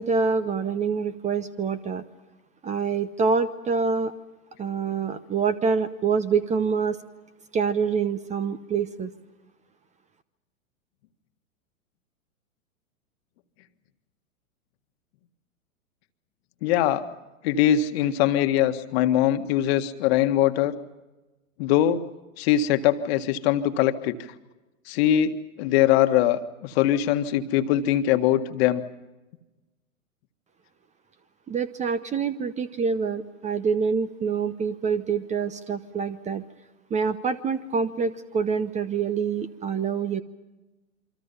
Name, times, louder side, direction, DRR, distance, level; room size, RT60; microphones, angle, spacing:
voice 1, 0.0-2.0 2.6-4.1 4.6-7.0 7.5-9.1 31.5-36.4 36.9-40.2, right 5 dB, 15° right, 14 dB, 0.9 m, -26 dB
voice 2, 16.6-17.0 17.4-20.7 21.6-22.0 22.4-24.2 24.9-25.3 25.6-28.8, left 11 dB, 45° left, 9 dB, 1.7 m, -22 dB
27.5 x 24.5 x 5.7 m, 1.1 s
hypercardioid pair, 105°, 42 cm